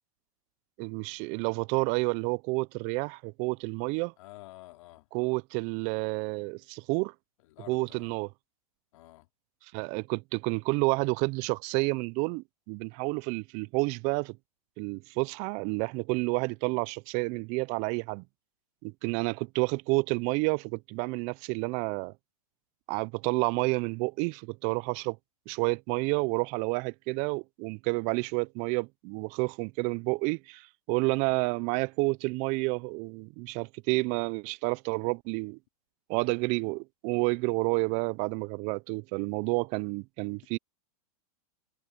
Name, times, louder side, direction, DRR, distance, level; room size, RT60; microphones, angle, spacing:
voice 1, 0.8-4.1 5.1-7.1 7.7-8.3 9.7-14.4 14.8-18.2 18.8-22.1 22.9-25.2 25.5-35.6 36.1-40.6, right 29 dB, 40° right, 0.5 m, -30 dB
voice 2, 4.2-5.1 7.4-8.1 8.9-9.3, left 19 dB, 60° left, 3.0 m, -50 dB
hypercardioid pair, 125°, 19 cm